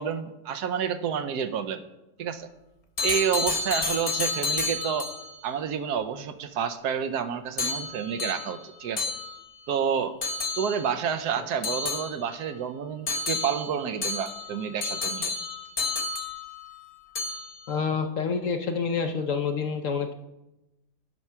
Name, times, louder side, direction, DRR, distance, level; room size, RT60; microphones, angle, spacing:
voice 1, 0.0-1.8 2.2-2.5 3.0-5.1 5.4-9.1 9.7-10.2 10.6-15.3, right 7 dB, 75° right, 8 dB, 1.2 m, -29 dB
sound 1, 3.0-5.4 7.6-9.7 10.2-11.0 11.6-12.5 13.1-16.8 17.1-17.7, left 3 dB, 30° left, 0.7 m, -31 dB
voice 2, 17.7-20.1, left 5 dB, 65° left, 7 dB, 0.9 m, -28 dB
11.0 x 5.9 x 5.6 m, 0.95 s
omnidirectional pair, 1.8 m